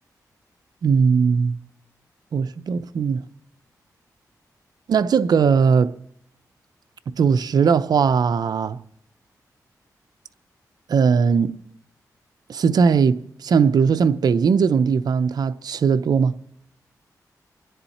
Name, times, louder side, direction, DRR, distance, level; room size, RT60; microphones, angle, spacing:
voice 1, 0.8-1.6 2.3-3.2 4.9-5.9 7.2-8.8 10.9-11.6 12.5-16.3, right 6 dB, 75° right, 0.6 m, -19 dB
24.0 x 10.0 x 4.3 m
cardioid pair, 65°, 7 cm